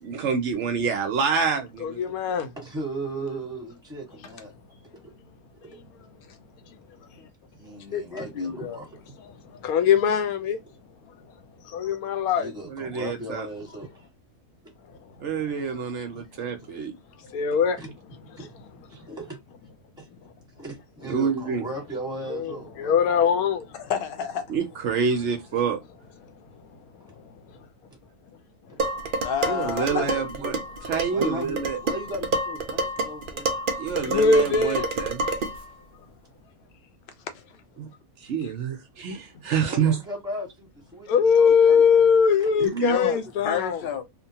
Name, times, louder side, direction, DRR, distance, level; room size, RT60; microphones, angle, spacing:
voice 1, 0.0-2.0 12.7-13.5 15.2-16.9 21.1-21.6 24.5-25.8 29.4-30.5 30.8-31.8 33.8-35.2 37.8-37.9 38.2-40.0 42.6-43.1, right 6 dB, 65° right, 0.8 m, -27 dB
voice 2, 1.8-2.5 9.6-10.6 11.7-12.5 17.3-17.8 22.3-23.7 34.0-34.9 41.1-43.8, left 6 dB, 85° left, 1.1 m, -21 dB
voice 3, 2.6-4.5 5.6-5.7 7.5-8.9 12.3-13.9 16.1-16.2 17.7-17.9 18.4-18.5 19.0-19.4 20.0-20.1 20.6-22.9 27.1-27.2 27.9-28.0 28.7-28.8 29.6-30.4 31.1-31.6 31.8-33.5 39.6-42.0, right 1 dB, 5° right, 1.1 m, -36 dB
voice 4, 7.9-8.8 23.7-24.5 29.2-30.1 37.3-37.4 38.4-38.5 42.9-44.0, left 8 dB, 60° left, 0.6 m, -30 dB
Dishes pots and pans, 28.8-35.7, right 2 dB, 90° right, 0.4 m, -29 dB
2.9 x 2.2 x 2.7 m
omnidirectional pair, 1.5 m